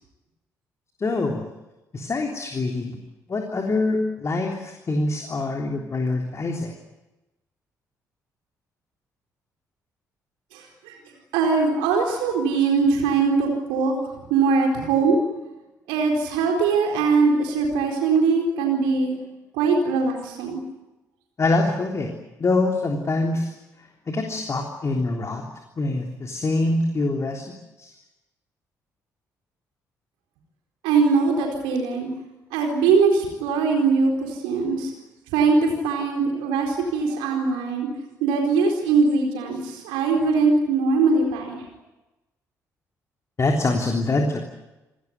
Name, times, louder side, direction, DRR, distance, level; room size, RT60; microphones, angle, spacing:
voice 1, 1.0-1.4 1.9-3.0 3.3-6.7 21.4-22.1 22.4-23.5 24.1-25.4 25.8-27.4 27.8-27.9 43.4-44.4, left 2 dB, 35° left, 2 dB, 3.5 m, -24 dB
voice 2, 10.5-11.0 11.3-13.9 14.3-15.2 15.9-19.1 19.5-20.6 30.8-32.1 32.5-34.9 35.3-37.9 38.2-41.6, right 4 dB, 65° right, 2 dB, 4.3 m, -21 dB
28.5 x 19.0 x 9.5 m, 1.0 s
figure-of-eight pair, 45°, 9 cm